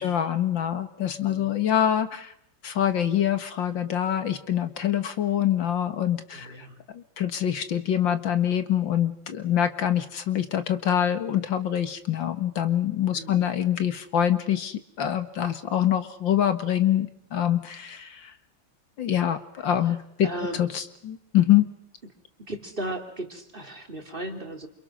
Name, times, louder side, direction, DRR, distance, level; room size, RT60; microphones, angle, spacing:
voice 1, 0.0-2.3 2.6-6.5 6.9-18.3 19.0-20.3 20.6-21.7, left 10 dB, 75° left, 10 dB, 2.3 m, -25 dB
voice 2, 1.2-1.6 6.3-6.8 13.1-13.5 19.8-20.0 20.2-20.7 22.5-24.7, right 1 dB, 25° right, 4 dB, 3.4 m, -36 dB
29.0 x 28.0 x 6.3 m, 0.70 s
omnidirectional pair, 2.1 m